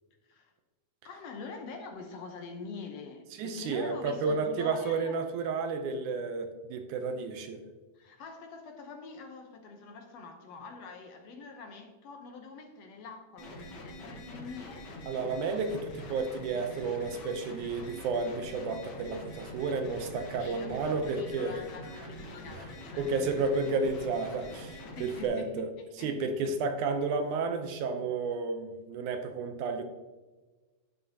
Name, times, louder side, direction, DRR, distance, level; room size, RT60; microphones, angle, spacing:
voice 1, 1.0-5.2 7.9-14.9 20.4-23.5 24.9-26.5, left 4 dB, 75° left, 4 dB, 1.6 m, -45 dB
voice 2, 3.4-7.6 15.1-21.6 23.0-25.7 26.0-29.8, right 4 dB, 75° right, 7 dB, 2.0 m, -32 dB
sound 1, 13.4-25.3, left 1 dB, 55° left, 1.2 m, -45 dB
11.0 x 7.8 x 2.8 m, 1.2 s
omnidirectional pair, 3.9 m